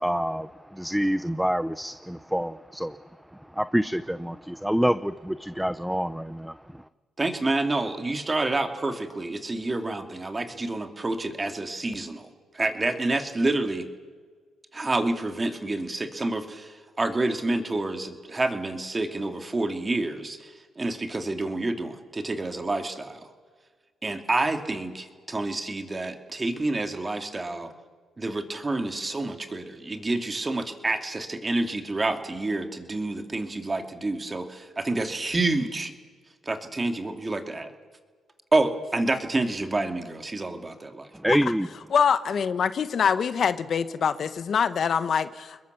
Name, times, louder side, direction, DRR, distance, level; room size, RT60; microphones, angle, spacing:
voice 1, 0.0-3.0 3.6-6.5 41.2-41.7, equal, 5° right, 14 dB, 0.7 m, -26 dB
voice 2, 7.2-13.9 14.7-23.3 24.0-27.7 28.2-35.9 36.4-37.7 38.5-41.1, right 2 dB, 25° right, 6 dB, 2.7 m, -28 dB
voice 3, 41.9-45.6, left 7 dB, 55° left, 12 dB, 1.2 m, -24 dB
28.5 x 21.5 x 7.0 m, 1.5 s
cardioid pair, 90°, 0 cm